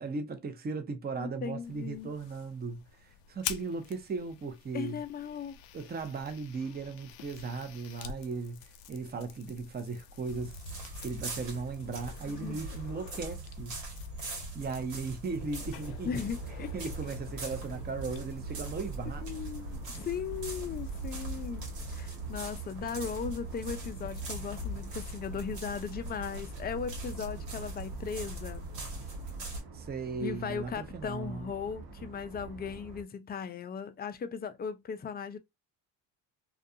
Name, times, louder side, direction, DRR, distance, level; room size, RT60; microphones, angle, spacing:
voice 1, 0.0-5.0 5.7-10.6 11.0-13.8 14.5-16.1 16.7-19.3 29.7-31.5, right 4 dB, 20° right, 0.6 m, -37 dB
voice 2, 1.2-2.1 4.7-5.6 12.3-12.6 16.0-16.7 19.2-28.7 30.2-35.4, left 6 dB, 20° left, 0.4 m, -37 dB
sound 1, 1.6-21.5, left 9 dB, 85° left, 0.5 m, -49 dB
sound 2, 10.3-29.6, right 2 dB, 85° right, 1.5 m, -41 dB
sound 3, 15.7-33.0, right 4 dB, 55° right, 1.0 m, -48 dB
2.4 x 2.3 x 2.7 m
supercardioid pair, 70°, 45 cm